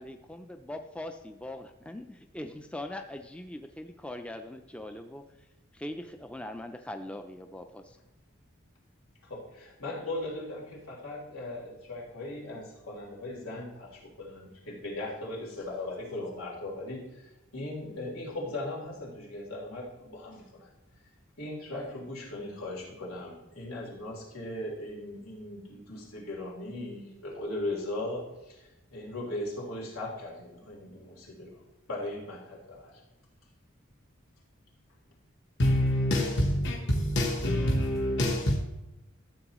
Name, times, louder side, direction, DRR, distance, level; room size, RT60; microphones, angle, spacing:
voice 1, 0.0-5.2 5.7-8.0, left 1 dB, 5° left, 0.4 m, -41 dB
voice 2, 9.2-20.7 21.4-31.6 31.9-33.0, left 1 dB, 85° left, 3.6 m, -38 dB
voice 3, 35.6-38.6, left 1 dB, 55° left, 1.3 m, -26 dB
13.5 x 7.8 x 3.0 m
head